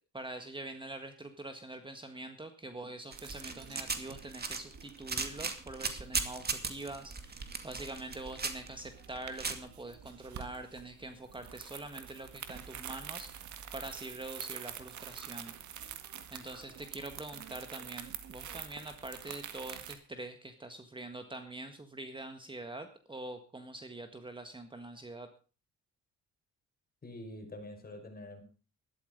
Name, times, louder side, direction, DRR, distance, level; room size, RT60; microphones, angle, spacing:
voice 1, 0.1-15.9 16.3-25.3, right 2 dB, 15° right, 8 dB, 1.7 m, -45 dB
sound 1, 3.1-9.5, right 4 dB, 30° right, 2.3 m, -37 dB
sound 2, 3.1-19.9, right 9 dB, 70° right, 2.0 m, -47 dB
voice 2, 27.0-28.4, left 1 dB, 30° left, 4 dB, 5.5 m, -46 dB
13.0 x 11.5 x 5.3 m, 0.37 s
cardioid pair, 90°, 30 cm